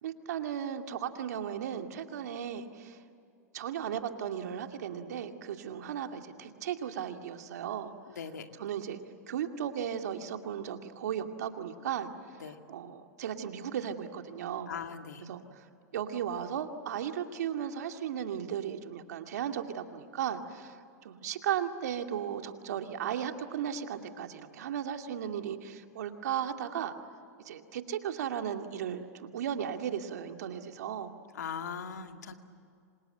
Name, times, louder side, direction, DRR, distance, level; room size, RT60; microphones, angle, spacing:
voice 1, 0.0-3.0 3.5-7.9 8.6-9.0 9.3-12.1 12.4-14.7 15.2-15.6 15.9-20.8 21.0-26.9 27.4-31.1, right 9 dB, 80° right, 5 dB, 2.4 m, -36 dB
voice 2, 14.7-15.2 31.3-32.3, left 7 dB, 90° left, 6 dB, 2.1 m, -39 dB
28.0 x 26.0 x 8.0 m, 2.5 s
hypercardioid pair, 115°, 9 cm